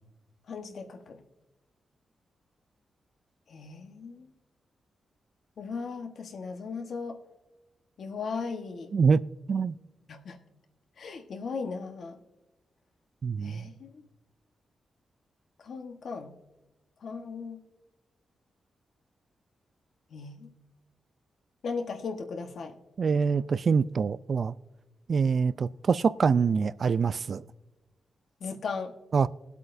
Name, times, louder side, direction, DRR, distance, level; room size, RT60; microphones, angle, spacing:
voice 1, 0.5-1.2 3.5-4.3 5.6-7.2 8.0-8.9 10.1-10.4 11.0-12.2 13.4-14.0 15.6-16.3 17.0-17.6 20.1-20.5 21.6-22.7 28.4-28.9, left 4 dB, 70° left, 5 dB, 1.1 m, -37 dB
voice 2, 13.2-13.7 23.0-24.5 25.1-27.4 29.1-29.3, right 5 dB, 55° right, 16 dB, 0.3 m, -25 dB
19.5 x 8.1 x 2.6 m, 1.1 s
cardioid pair, 80°, 0 cm